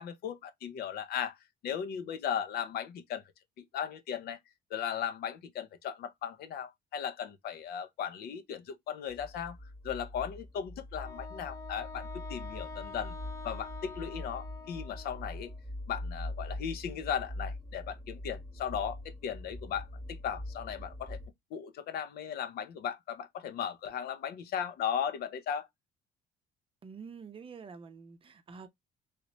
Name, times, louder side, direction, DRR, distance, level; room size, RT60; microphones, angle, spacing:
voice 1, 0.0-1.4 1.6-3.2 3.7-4.4 4.7-9.6 9.8-13.1 13.4-15.5 15.9-21.2 21.5-25.7, left 8 dB, 65° left, 0.7 m, -37 dB
sound 1, 9.1-21.3, left 1 dB, ahead, 1.0 m, -43 dB
Wind instrument woodwind instrument, 11.0-15.6, left 4 dB, 15° left, 0.5 m, -47 dB
voice 2, 26.8-28.7, right 5 dB, 30° right, 0.6 m, -47 dB
3.2 x 3.0 x 2.9 m
cardioid pair, 110°, 17 cm